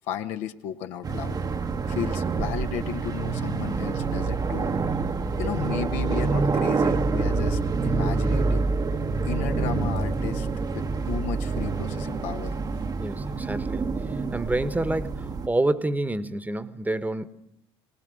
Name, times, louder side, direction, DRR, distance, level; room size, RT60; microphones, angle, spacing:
voice 1, 0.1-1.4 1.9-4.7 5.4-8.6 9.3-10.5 10.7-12.6, left 9 dB, 65° left, 7 dB, 1.2 m, -34 dB
sound 1, 1.0-15.5, right 4 dB, 30° right, 1.1 m, -27 dB
voice 2, 13.0-17.3, right 2 dB, 10° right, 13 dB, 1.3 m, -28 dB
21.0 x 19.0 x 7.8 m, 0.75 s
hypercardioid pair, 70°, 13 cm